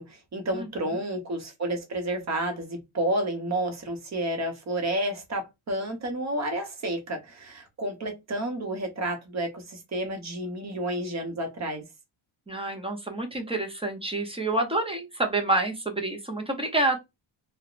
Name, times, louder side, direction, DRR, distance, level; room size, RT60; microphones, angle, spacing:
voice 1, 0.0-11.8, right 1 dB, 35° right, 0.7 m, -30 dB
voice 2, 0.5-1.0 12.5-17.0, right 2 dB, 15° right, 0.4 m, -28 dB
2.9 x 2.0 x 2.4 m
wide cardioid pair, 170°, 50 cm